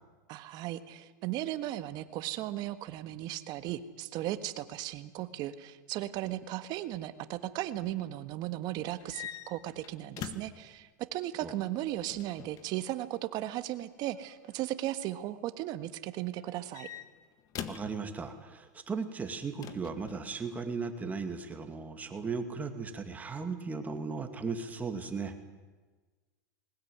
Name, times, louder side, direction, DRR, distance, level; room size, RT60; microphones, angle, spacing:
voice 1, 0.3-16.9, right 14 dB, 45° right, 11 dB, 1.6 m, -36 dB
sound 1, 9.0-10.7 11.9-12.7 14.2-14.6 16.4-18.0 19.6-20.3, left 9 dB, 35° left, 1.7 m, -44 dB
voice 2, 17.7-25.4, right 4 dB, 15° right, 7 dB, 2.4 m, -37 dB
20.5 x 19.0 x 9.5 m, 1.3 s
supercardioid pair, 135°, 10 cm